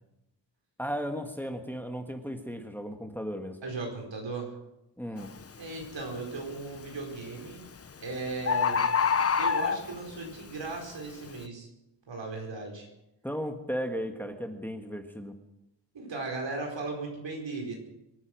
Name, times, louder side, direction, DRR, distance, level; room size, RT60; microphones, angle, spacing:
voice 1, 0.8-3.6 5.0-5.3 13.2-15.3, equal, 5° left, 5 dB, 1.6 m, -35 dB
voice 2, 3.6-4.5 5.6-7.6 8.0-8.9 9.4-11.7 12.1-12.9 15.9-17.7, right 3 dB, 80° right, 1 dB, 4.7 m, -37 dB
Bird, 5.2-5.4 6.0-6.4 7.4-7.5 7.8-7.9 8.1-8.2 8.5-10.2 10.8-10.9, left 6 dB, 35° left, 0.7 m, -26 dB
24.0 x 9.6 x 6.3 m, 0.89 s
wide cardioid pair, 110°, 44 cm